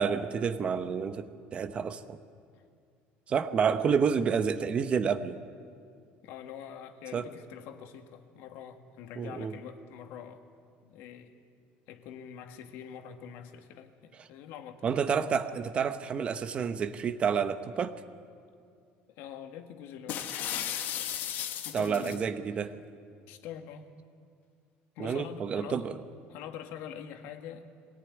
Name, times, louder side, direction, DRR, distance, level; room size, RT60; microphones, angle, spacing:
voice 1, 0.0-2.2 3.3-5.4 7.1-7.3 9.2-9.5 14.8-17.9 21.7-22.7 25.0-25.9, right 6 dB, 30° right, 11 dB, 0.8 m, -29 dB
voice 2, 6.2-10.4 10.9-11.3 11.9-14.9 19.1-20.3 21.6-22.2 22.5-22.6 23.3-23.9 25.0-25.9 26.3-27.7, left 8 dB, 65° left, 6 dB, 1.8 m, -44 dB
sound 1, 20.1-22.2, left 10 dB, 50° left, 1.3 m, -35 dB
22.5 x 18.0 x 9.7 m, 2.2 s
cardioid pair, 165°, 4 cm